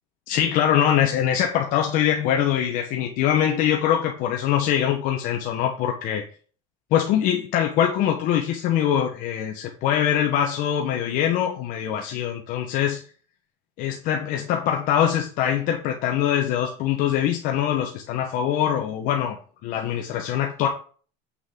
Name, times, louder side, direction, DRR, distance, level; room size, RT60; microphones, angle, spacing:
voice 1, 0.3-6.2 6.9-13.0 13.8-19.4 19.6-20.7, left 10 dB, 60° left, 2 dB, 1.1 m, -23 dB
7.6 x 6.2 x 3.8 m, 0.43 s
cardioid pair, 140°, 16 cm